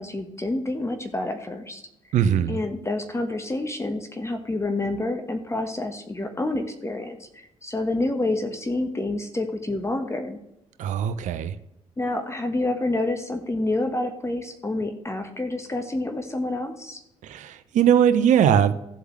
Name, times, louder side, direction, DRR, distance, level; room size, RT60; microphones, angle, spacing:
voice 1, 0.0-1.8 2.5-10.4 12.0-17.0, left 2 dB, 20° left, 6 dB, 1.3 m, -28 dB
voice 2, 2.1-2.6 10.8-11.5 17.2-18.7, right 9 dB, 55° right, 12 dB, 0.7 m, -20 dB
14.5 x 8.0 x 3.2 m, 0.83 s
figure-of-eight pair, 45°, 15 cm